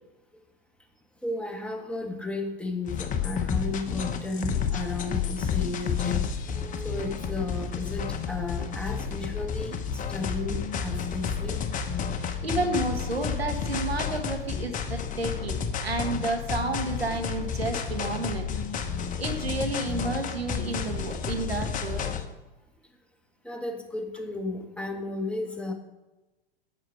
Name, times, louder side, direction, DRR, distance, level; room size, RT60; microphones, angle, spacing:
voice 1, 1.2-11.6 23.4-25.7, left 2 dB, 5° left, 3 dB, 1.5 m, -34 dB
sound 1, 2.9-22.2, left 7 dB, 25° left, 1.2 m, -31 dB
voice 2, 12.0-18.5 19.2-22.1, right 2 dB, 90° right, 5 dB, 1.8 m, -31 dB
9.0 x 7.7 x 6.3 m, 1.0 s
figure-of-eight pair, 95°, 30 cm